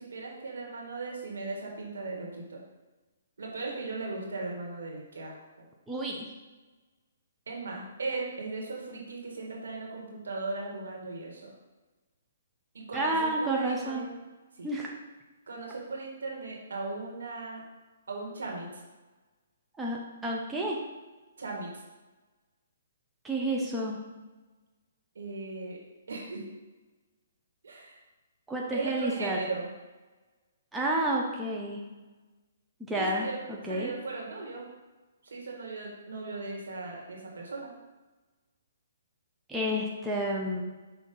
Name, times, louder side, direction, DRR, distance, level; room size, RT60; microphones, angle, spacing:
voice 1, 0.0-2.6 3.4-5.7 7.5-11.5 12.7-14.1 14.5-14.7 15.5-17.6 18.1-18.8 21.4-21.8 25.2-25.8 26.1-26.4 27.6-28.0 28.7-29.7 32.9-33.4 33.7-34.7 35.2-37.7, right 3 dB, 75° right, -1 dB, 1.8 m, -37 dB
voice 2, 5.9-6.3 12.9-14.0 14.6-14.9 19.8-20.8 23.2-24.0 28.5-29.4 30.7-31.8 32.8-33.3 33.6-33.9 39.5-40.6, right 1 dB, 10° right, -3 dB, 0.8 m, -30 dB
6.2 x 2.9 x 5.4 m, 1.2 s
hypercardioid pair, 140°, 0 cm